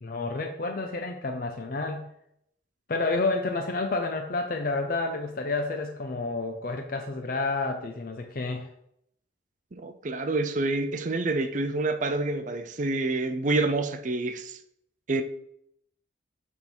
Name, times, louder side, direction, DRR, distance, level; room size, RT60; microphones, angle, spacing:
voice 1, 0.0-2.1 2.9-8.7, left 3 dB, 50° left, 0.5 m, -30 dB
voice 2, 9.7-14.6 15.1-15.2, right 2 dB, 40° right, 0.5 m, -27 dB
6.5 x 3.6 x 4.4 m
head